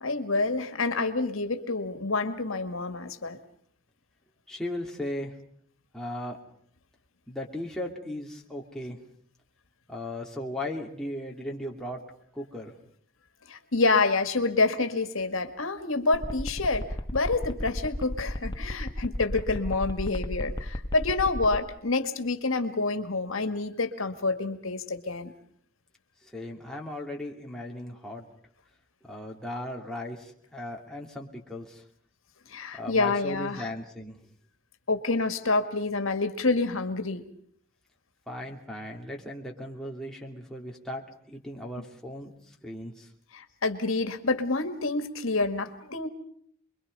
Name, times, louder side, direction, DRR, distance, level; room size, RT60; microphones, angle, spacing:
voice 1, 0.0-3.4 13.5-16.9 17.1-25.3 32.5-33.7 34.9-37.2 43.3-46.1, left 3 dB, 80° left, 7 dB, 1.9 m, -27 dB
voice 2, 4.5-5.4 5.9-6.4 7.3-9.0 9.9-12.0 12.3-12.7 26.2-28.2 29.1-31.8 32.7-34.2 38.3-41.0 41.3-43.1, left 1 dB, 5° left, -2 dB, 2.8 m, -37 dB
sound 1, 16.1-21.6, left 1 dB, 20° left, 1.1 m, -33 dB
29.0 x 22.5 x 5.5 m, 0.63 s
head